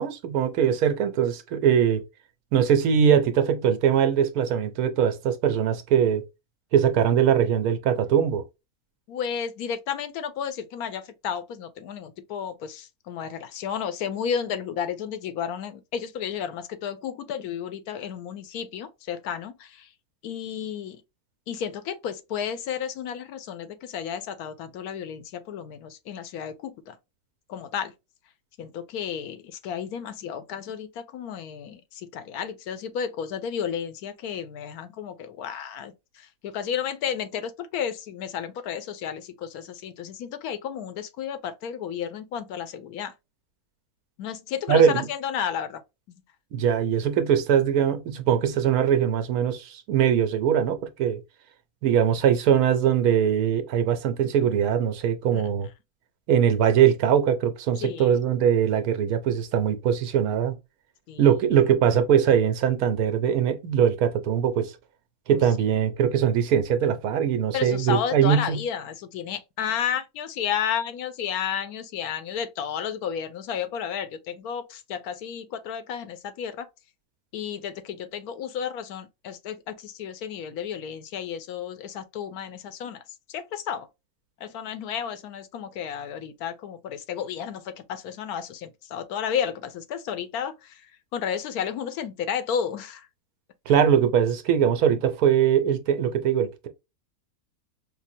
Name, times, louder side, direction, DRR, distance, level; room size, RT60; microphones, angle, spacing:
voice 1, 0.0-2.0 2.5-6.3 6.7-8.4 44.7-45.1 46.5-51.2 51.8-55.7 56.3-60.5 61.2-64.7 65.3-68.6 93.7-96.7, right 8 dB, 80° right, 1.1 m, -21 dB
voice 2, 9.1-19.9 20.2-21.0 21.5-27.0 27.5-27.9 28.6-43.1 44.2-45.8 46.1-46.2 55.3-55.5 57.8-58.2 61.1-61.3 65.3-65.5 67.5-76.7 77.3-83.0 83.3-83.9 84.4-93.1, left 8 dB, 85° left, 1.1 m, -32 dB
5.0 x 2.0 x 2.6 m
omnidirectional pair, 1.6 m